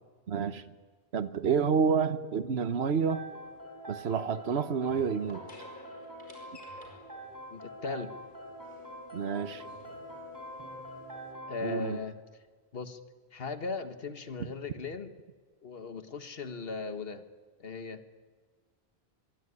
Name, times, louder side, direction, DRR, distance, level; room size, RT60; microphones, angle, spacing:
voice 1, 0.3-0.6 1.1-3.2 3.9-5.4 9.1-9.6 11.6-12.0, right 6 dB, 80° right, 12 dB, 1.3 m, -29 dB
sound 1, 2.8-11.3, left 1 dB, 50° left, 6.2 m, -55 dB
sound 2, 2.9-11.9, equal, 20° right, 6.9 m, -45 dB
voice 2, 7.5-8.1 11.5-12.2 12.7-13.0 13.3-15.1 15.6-17.2 17.6-18.0, left 4 dB, 65° left, 9 dB, 1.7 m, -38 dB
24.0 x 24.0 x 9.7 m, 1.5 s
omnidirectional pair, 1.1 m